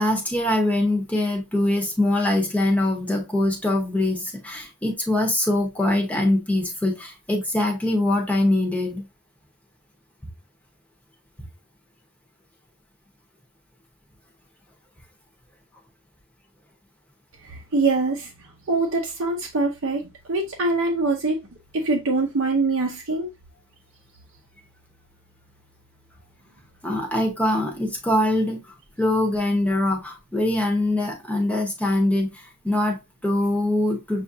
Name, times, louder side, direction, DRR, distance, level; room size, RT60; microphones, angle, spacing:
voice 1, 0.0-9.1 26.8-28.6 29.0-34.2, left 1 dB, 5° left, 0.8 m, -23 dB
voice 2, 17.4-21.4 21.7-23.3, right 3 dB, 55° right, 0.7 m, -24 dB
6.3 x 2.4 x 2.6 m
head